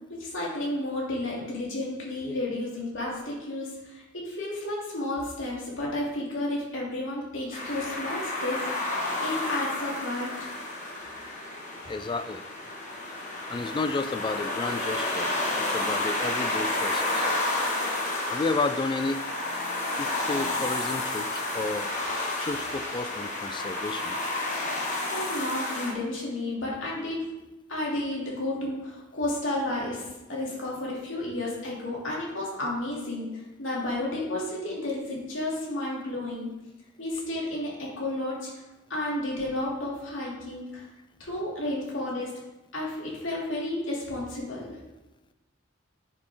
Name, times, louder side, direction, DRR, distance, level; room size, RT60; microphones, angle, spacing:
voice 1, 0.1-10.5 25.1-27.3 27.7-36.5 37.0-38.5 38.9-40.9 41.2-42.3 42.7-44.8, left 1 dB, 70° left, -5 dB, 3.0 m, -32 dB
sound 1, 7.5-25.9, left 2 dB, 40° left, 1.7 m, -31 dB
voice 2, 11.9-12.4 13.5-17.3 18.3-19.2 20.0-21.9 22.4-24.2, left 3 dB, 25° left, 11 dB, 0.4 m, -32 dB
9.8 x 6.7 x 3.9 m, 1.0 s
head